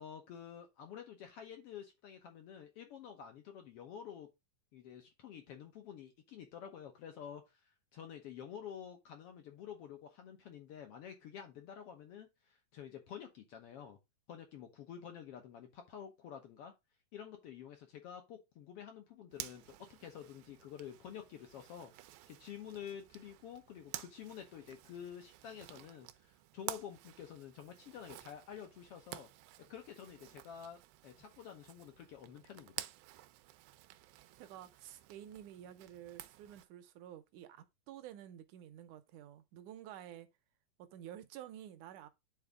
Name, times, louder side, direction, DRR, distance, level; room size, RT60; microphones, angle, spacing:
voice 1, 0.0-4.3 4.7-7.6 7.9-14.0 14.3-16.7 17.1-21.9 22.3-29.3 29.7-30.8 31.0-32.8, left 8 dB, 75° left, 1.4 m, -49 dB
Zipper (clothing), 19.3-36.6, right 15 dB, 90° right, 2.4 m, -51 dB
voice 2, 34.3-40.3 40.8-42.1, right 11 dB, 75° right, 2.0 m, -51 dB
9.8 x 4.0 x 3.4 m
omnidirectional pair, 4.1 m